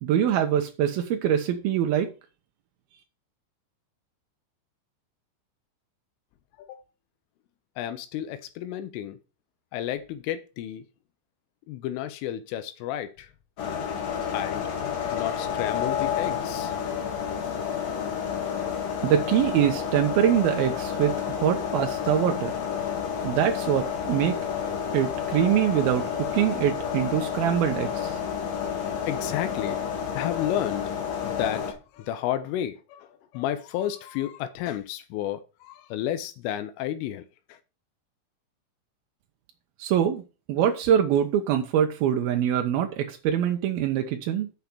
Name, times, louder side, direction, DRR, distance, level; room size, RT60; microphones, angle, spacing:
voice 1, 0.0-2.1 19.0-22.5 23.2-24.4 24.9-28.2 39.8-40.2 40.5-44.5, right 10 dB, 85° right, 2.1 m, -24 dB
voice 2, 7.8-9.2 9.7-10.9 11.7-13.3 14.3-14.7 15.1-16.8 28.6-28.7 29.1-29.8 30.1-30.9 31.2-37.2 37.5-37.6, left 11 dB, 85° left, 3.3 m, -32 dB
sound 1, 13.6-31.7, left 8 dB, 50° left, 2.4 m, -30 dB
7.8 x 5.9 x 6.8 m
omnidirectional pair, 5.6 m